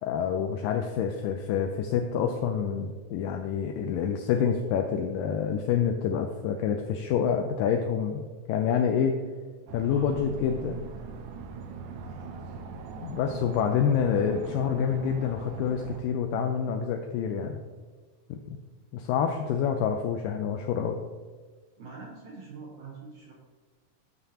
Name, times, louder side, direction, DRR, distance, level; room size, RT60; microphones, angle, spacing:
voice 1, 0.0-8.2 8.5-9.2 9.7-10.8 13.0-17.6 18.3-18.6 18.9-21.0, left 7 dB, 80° left, 4 dB, 2.1 m, -27 dB
sound 1, 9.7-16.0, right 4 dB, 90° right, 1.6 m, -41 dB
voice 2, 21.8-23.3, right 4 dB, 65° right, -3 dB, 2.1 m, -44 dB
11.0 x 6.1 x 2.9 m, 1.4 s
omnidirectional pair, 4.1 m